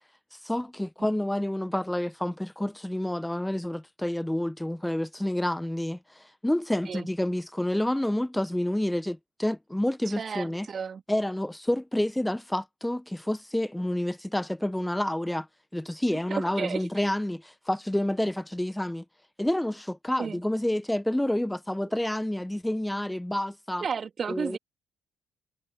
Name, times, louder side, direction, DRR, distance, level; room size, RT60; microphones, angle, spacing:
voice 1, 0.3-10.7 11.1-15.5 15.7-19.0 19.4-23.8 24.3-24.6, left 1 dB, 5° left, 1.4 m, -29 dB
voice 2, 10.2-11.0 16.3-16.8 20.2-20.4 23.8-24.6, right 6 dB, 40° right, 2.9 m, -32 dB
figure-of-eight pair, 45°, 0 cm